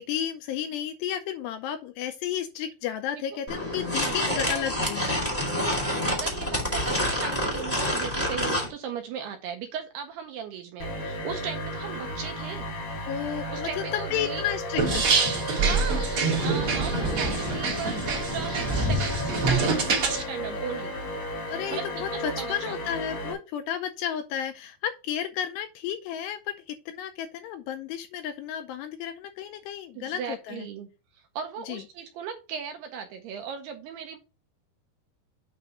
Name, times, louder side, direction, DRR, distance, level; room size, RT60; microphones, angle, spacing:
voice 1, 0.0-5.1 13.1-15.1 21.5-30.7 31.7-31.8, left 10 dB, 80° left, 2.5 m, -32 dB
sound 1, 3.5-8.7, left 1 dB, 10° left, 0.7 m, -27 dB
voice 2, 4.0-4.6 6.0-12.7 13.5-14.4 15.6-21.0 21.7-21.8 22.1-22.8 30.0-30.9 31.1-34.2, right 7 dB, 80° right, 2.5 m, -37 dB
sound 2, 10.8-23.3, left 1 dB, 50° left, 1.6 m, -34 dB
sound 3, 14.8-20.2, right 4 dB, 50° right, 1.7 m, -25 dB
8.7 x 3.4 x 5.5 m
omnidirectional pair, 5.3 m